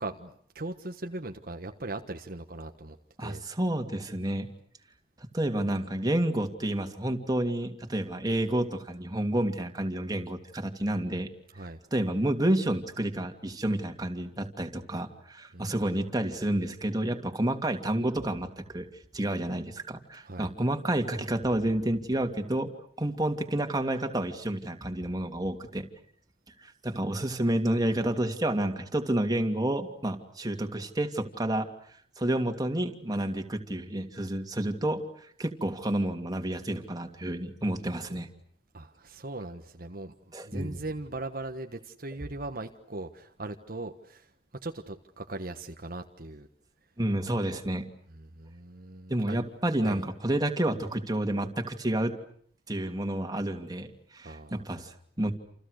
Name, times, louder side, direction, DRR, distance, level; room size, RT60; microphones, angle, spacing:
voice 1, 0.0-3.4 11.5-11.8 15.5-15.9 20.2-20.5 38.7-46.5 48.1-49.4 49.8-50.0 54.2-54.7, right 2 dB, 55° right, 5 dB, 1.4 m, -39 dB
voice 2, 3.2-4.5 5.2-11.3 11.9-18.9 19.1-22.7 23.0-25.8 26.6-31.7 32.2-38.3 40.3-40.8 47.0-47.9 49.1-52.1 52.7-55.3, right 1 dB, 20° right, 4 dB, 2.7 m, -30 dB
29.0 x 28.5 x 6.6 m, 0.63 s
head